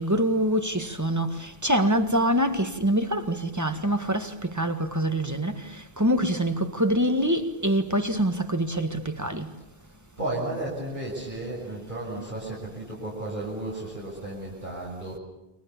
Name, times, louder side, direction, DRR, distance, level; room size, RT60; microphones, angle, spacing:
voice 1, 0.0-5.6 6.0-9.5, right 1 dB, 15° right, 1.8 m, -25 dB
voice 2, 9.8-15.2, right 2 dB, 50° right, 7.4 m, -34 dB
29.5 x 24.0 x 7.2 m
omnidirectional pair, 1.0 m